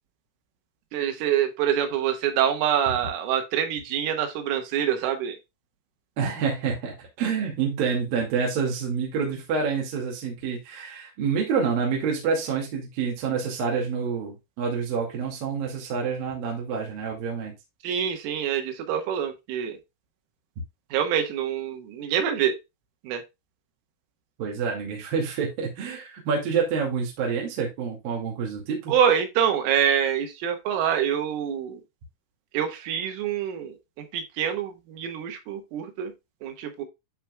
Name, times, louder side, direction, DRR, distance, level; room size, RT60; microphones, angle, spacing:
voice 1, 0.9-5.4 17.8-19.8 20.9-22.6 23.0-23.2 28.9-31.8 32.5-36.1 36.4-36.8, right 9 dB, 80° right, 6 dB, 3.9 m, -26 dB
voice 2, 6.2-17.5 24.4-28.9, right 6 dB, 55° right, -1 dB, 3.4 m, -27 dB
12.5 x 4.4 x 2.3 m, 0.22 s
omnidirectional pair, 5.7 m